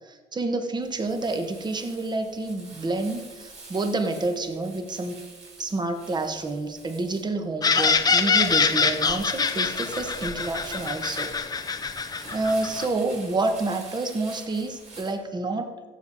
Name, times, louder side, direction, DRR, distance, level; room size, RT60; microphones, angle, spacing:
voice 1, 0.0-5.2 5.6-11.3 12.2-15.7, right 2 dB, 25° right, 6 dB, 1.3 m, -28 dB
Crumpling crinkling, 0.8-15.1, right 3 dB, 40° right, 4.1 m, -45 dB
sound 1, 7.6-12.9, left 5 dB, 25° left, 0.6 m, -24 dB
15.5 x 7.2 x 4.2 m, 1.3 s
cardioid pair, 110°, 17 cm